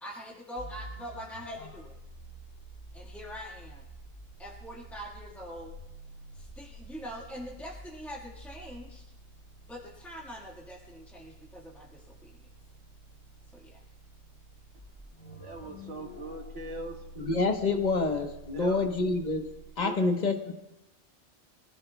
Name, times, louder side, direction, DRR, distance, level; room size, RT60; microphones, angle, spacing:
voice 1, 0.0-2.0 2.9-3.8 4.4-5.8 6.3-9.0 9.7-12.3 13.5-13.8, equal, ahead, -3 dB, 1.7 m, -43 dB
sound 1, 0.6-19.7, right 1 dB, 85° left, 3.6 m, -49 dB
voice 2, 15.4-17.0 18.5-18.8 19.8-20.1, right 2 dB, 80° right, 0 dB, 2.2 m, -40 dB
voice 3, 17.2-19.5 19.8-20.5, left 3 dB, 40° left, 4 dB, 1.3 m, -27 dB
25.5 x 15.0 x 2.3 m, 0.94 s
omnidirectional pair, 1.2 m